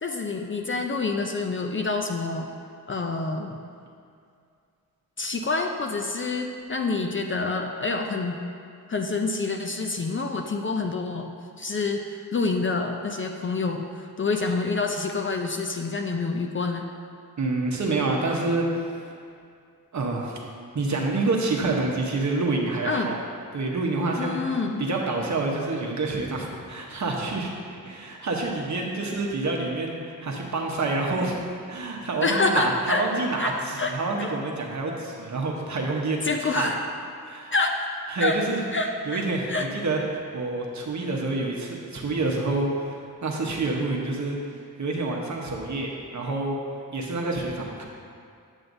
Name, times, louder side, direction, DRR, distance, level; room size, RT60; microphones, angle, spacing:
voice 1, 0.0-2.5 2.9-3.6 5.2-8.4 8.9-11.3 11.6-16.9 22.8-23.2 24.2-24.9 32.2-33.0 33.4-33.9 34.2-34.3 36.2-36.8 37.5-37.9 38.2-38.4 38.7-39.7, left 3 dB, 35° left, 3 dB, 0.4 m, -27 dB
voice 2, 17.4-19.1 19.9-20.4 20.7-23.2 23.5-24.4 24.8-27.5 27.8-31.3 31.7-36.7 37.2-37.5 38.1-38.6 39.1-40.0 40.3-46.6 46.9-47.8, right 2 dB, 50° right, -1 dB, 1.0 m, -27 dB
8.0 x 7.7 x 2.6 m, 2.3 s
wide cardioid pair, 120°, 36 cm